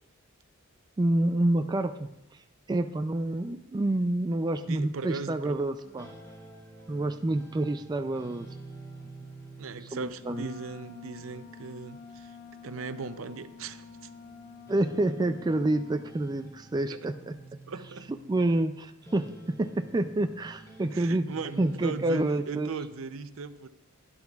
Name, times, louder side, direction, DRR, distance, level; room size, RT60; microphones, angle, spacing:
voice 1, 1.0-2.1 2.7-6.1 6.9-8.5 9.9-10.5 14.7-17.4 18.3-21.3 21.6-22.7, right 1 dB, 20° right, 7 dB, 0.3 m, -28 dB
voice 2, 4.7-5.6 9.6-12.4 12.6-14.1 16.9-17.0 17.7-18.1 20.8-23.7, right 4 dB, 65° right, 11 dB, 0.6 m, -38 dB
sound 1, 5.8-18.7 19.0-22.2, right 2 dB, 15° left, 3.2 m, -49 dB
Wind instrument woodwind instrument, 10.2-16.2, left 6 dB, 35° left, 1.2 m, -49 dB
15.5 x 11.5 x 2.4 m, 0.86 s
head